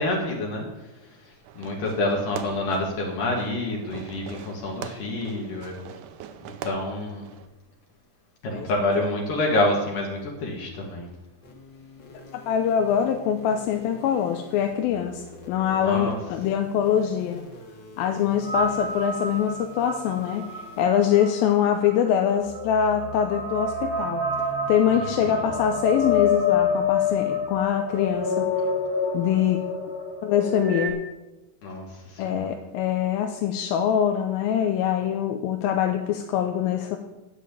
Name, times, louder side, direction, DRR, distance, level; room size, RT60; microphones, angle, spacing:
voice 1, 0.0-5.7 6.4-7.3 8.4-11.1 15.7-16.2 24.9-25.4 31.6-32.5, left 2 dB, 70° left, -1 dB, 3.1 m, -28 dB
Fireworks, 1.4-7.5, right 9 dB, 75° right, 2.0 m, -42 dB
sound 1, 11.4-20.8, left 3 dB, 45° left, 1.8 m, -45 dB
voice 2, 12.3-17.4 18.0-24.2 24.7-28.5 29.1-29.6 30.2-31.0 32.2-37.0, left 9 dB, 90° left, 5 dB, 2.5 m, -24 dB
sound 2, 18.4-30.9, left 4 dB, 15° right, 0.8 m, -28 dB
10.0 x 7.2 x 8.3 m, 1.0 s
omnidirectional pair, 4.1 m